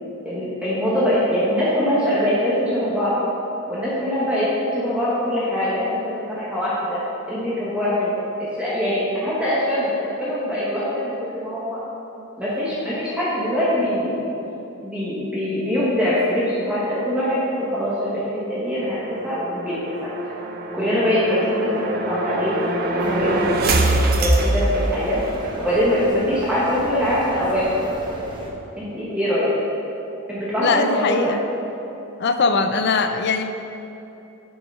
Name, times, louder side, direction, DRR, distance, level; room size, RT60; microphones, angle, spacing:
voice 1, 0.2-3.1 3.7-7.0 7.3-8.1 8.6-11.8 12.4-14.5 14.8-20.1 20.7-25.2 25.6-27.8 28.8-29.5 30.3-31.3, equal, 5° right, -9 dB, 1.3 m, -23 dB
sound 1, 18.8-25.6, right 2 dB, 45° right, 0.6 m, -24 dB
sound 2, 23.0-28.5, equal, 20° right, 1.0 m, -34 dB
voice 2, 30.6-31.4 32.2-33.5, left 4 dB, 50° left, 8 dB, 0.5 m, -21 dB
7.5 x 5.9 x 5.5 m, 2.9 s
head